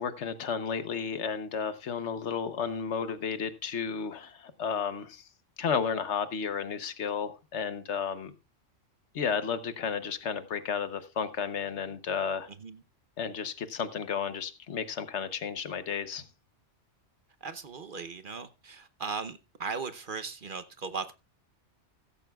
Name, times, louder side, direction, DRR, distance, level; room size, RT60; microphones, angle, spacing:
voice 1, 0.0-5.2 5.6-8.3 9.1-12.5 13.2-16.3, left 6 dB, 70° left, 1.2 m, -32 dB
voice 2, 17.4-21.1, right 5 dB, 50° right, 0.8 m, -38 dB
15.0 x 14.0 x 2.3 m
omnidirectional pair, 1.3 m